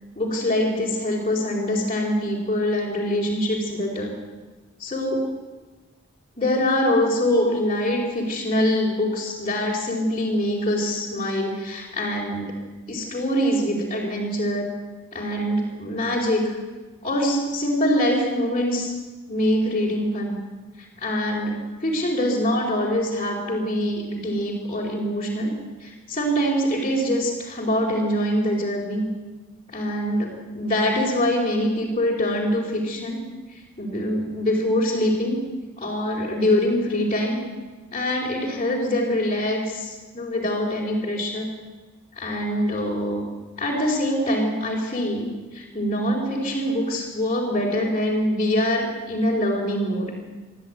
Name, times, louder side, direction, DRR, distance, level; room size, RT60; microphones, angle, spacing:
voice 1, 0.1-4.1 4.8-5.2 6.4-12.5 12.9-14.7 15.1-16.5 17.0-18.9 19.3-20.4 20.8-25.5 25.8-29.0 29.7-33.2 33.8-35.4 35.8-37.4 37.9-41.5 42.1-43.2 43.6-45.3 45.5-50.1, left 1 dB, 30° left, -5 dB, 4.5 m, -24 dB
23.5 x 13.5 x 9.5 m, 1.3 s
head